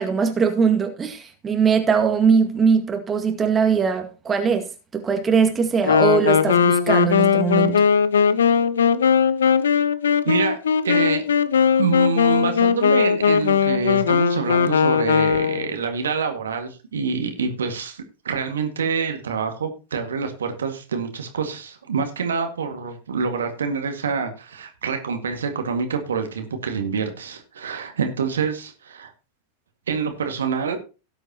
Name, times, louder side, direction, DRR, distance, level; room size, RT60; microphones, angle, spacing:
voice 1, 0.0-4.7 4.9-7.8, right 6 dB, 20° right, 2.0 m, -20 dB
Wind instrument woodwind instrument, 5.8-15.7, left 7 dB, 65° left, 0.7 m, -19 dB
voice 2, 10.2-10.6 10.8-11.2 11.8-29.1 29.9-30.8, right 5 dB, 65° right, 1.9 m, -26 dB
17.5 x 7.9 x 2.9 m
figure-of-eight pair, 90°, 0 cm